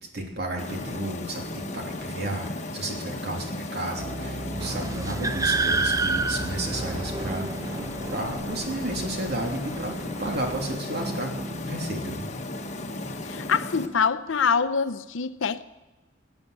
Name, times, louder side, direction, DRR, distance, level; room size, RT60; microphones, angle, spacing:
voice 1, 0.1-12.3, right 1 dB, 55° right, 1 dB, 3.1 m, -33 dB
sound 1, 0.6-13.9, left 2 dB, 40° left, 1.1 m, -35 dB
sound 2, 4.0-10.2 11.0-13.6, right 1 dB, 35° right, 0.8 m, -39 dB
sound 3, 4.6-10.8, right 3 dB, 15° right, 0.4 m, -31 dB
voice 2, 13.2-15.6, left 6 dB, 80° left, 13 dB, 0.7 m, -25 dB
17.5 x 9.1 x 8.3 m, 1.1 s
head